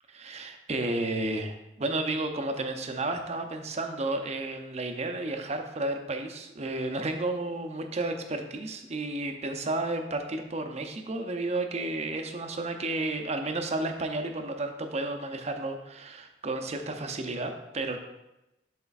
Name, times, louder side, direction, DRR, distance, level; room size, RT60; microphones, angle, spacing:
voice 1, 0.1-18.0, right 2 dB, 35° right, 5 dB, 0.6 m, -32 dB
11.0 x 4.4 x 2.4 m, 0.94 s
head